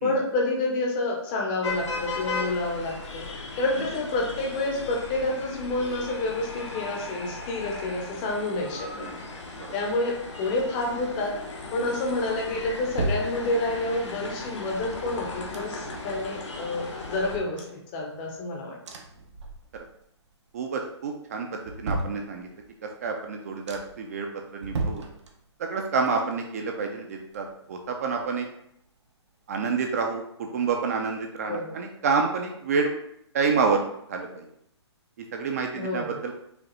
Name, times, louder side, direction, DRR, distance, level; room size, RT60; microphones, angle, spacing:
voice 1, 0.0-3.3 3.6-9.0 9.7-11.3 11.7-18.8 31.5-31.8 35.7-36.2, left 2 dB, 20° left, 0 dB, 0.6 m, -29 dB
sound 1, 1.6-17.4, left 3 dB, 80° left, 1.0 m, -37 dB
sound 2, 12.2-14.0 14.7-16.1 16.4-16.5 16.8-18.4 18.8-20.0 20.3-20.8 21.3-22.8 23.2-23.3 23.7-24.1 24.6-25.8 26.1-27.9 28.2-28.3, right 2 dB, 75° right, 0.7 m, -36 dB
voice 2, 20.5-22.5 23.0-24.3 24.5-25.0 25.6-28.5 29.5-32.9 33.3-33.8 34.1-34.4 35.2-36.3, right 5 dB, 35° right, 2 dB, 0.3 m, -28 dB
4.9 x 2.3 x 3.0 m, 0.76 s
hypercardioid pair, 160°, 15 cm